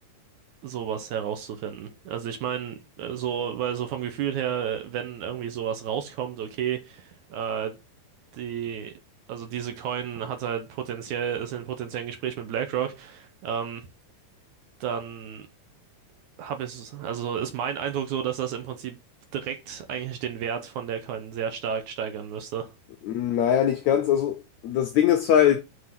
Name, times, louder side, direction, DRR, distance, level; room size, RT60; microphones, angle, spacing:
voice 1, 0.6-7.8 8.3-8.9 9.3-13.8 14.8-15.5 16.4-19.0 19.3-22.7, right 8 dB, 70° right, 2.1 m, -31 dB
voice 2, 23.0-25.6, left 10 dB, 85° left, 1.6 m, -22 dB
6.0 x 5.5 x 5.9 m
omnidirectional pair, 4.2 m